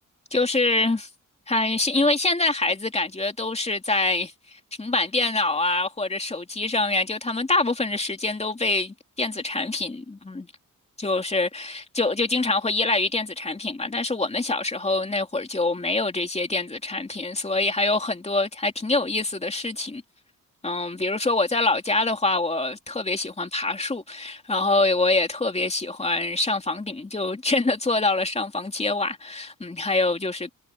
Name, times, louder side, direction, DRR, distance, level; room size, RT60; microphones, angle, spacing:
voice 1, 0.3-1.1 1.5-10.5 11.0-20.0 20.6-30.5, left 2 dB, 20° left, 2.9 m, -25 dB
cardioid pair, 95°, 32 cm